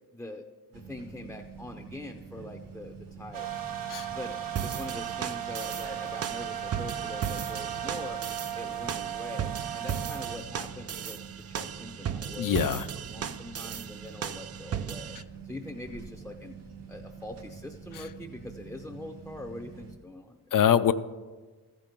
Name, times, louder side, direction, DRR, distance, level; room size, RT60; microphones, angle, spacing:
voice 1, 0.1-0.4 0.7-3.6 4.1-4.4 4.6-8.2 8.5-15.2 15.4-16.6 16.9-20.4, left 1 dB, 5° left, 5 dB, 0.6 m, -43 dB
sound 1, 0.7-20.0, right 5 dB, 70° right, 2.0 m, -46 dB
sound 2, 3.3-10.4, right 10 dB, 55° right, 1.1 m, -36 dB
sound 3, 4.6-15.2, right 8 dB, 40° right, 0.4 m, -36 dB
voice 2, 12.4-12.9 17.9-18.0 20.5-20.9, left 9 dB, 50° left, 13 dB, 0.5 m, -24 dB
14.0 x 5.2 x 6.0 m, 1.3 s
cardioid pair, 75°, 41 cm